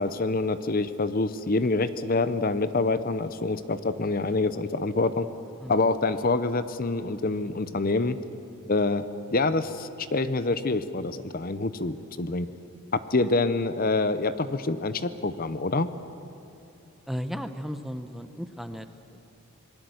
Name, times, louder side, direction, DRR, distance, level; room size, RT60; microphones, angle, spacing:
voice 1, 0.0-5.3 5.7-8.2 8.7-9.0 9.3-12.5 12.9-15.9, left 3 dB, 40° left, 13 dB, 0.7 m, -26 dB
voice 2, 17.1-19.2, equal, ahead, 9 dB, 0.7 m, -35 dB
26.5 x 20.5 x 7.9 m, 2.8 s
head